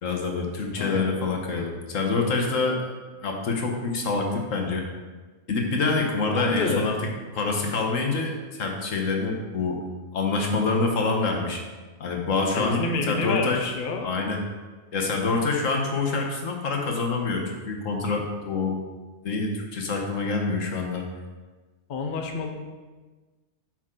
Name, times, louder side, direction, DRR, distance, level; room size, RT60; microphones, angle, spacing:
voice 1, 0.0-2.8 3.2-4.8 5.5-7.0 7.3-9.8 10.1-11.6 12.0-12.8 13.1-13.7 14.0-14.4 14.9-18.8 19.2-21.0, left 3 dB, 70° left, 2 dB, 1.5 m, -26 dB
voice 2, 0.8-1.1 6.3-7.0 12.5-14.1 21.9-22.5, left 3 dB, 45° left, 3 dB, 0.8 m, -28 dB
9.0 x 6.2 x 3.8 m, 1.3 s
omnidirectional pair, 1.4 m